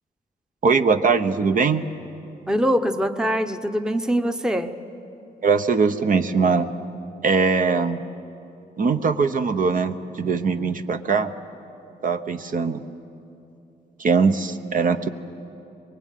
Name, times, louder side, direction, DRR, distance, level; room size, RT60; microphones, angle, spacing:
voice 1, 0.6-1.8 5.4-6.7 7.2-8.0 8.8-11.3 12.0-12.8 14.0-15.1, right 5 dB, 50° right, 8 dB, 1.0 m, -21 dB
voice 2, 2.5-4.8, equal, 5° right, 7 dB, 0.9 m, -23 dB
24.0 x 22.0 x 9.3 m, 2.8 s
cardioid pair, 125°, 17 cm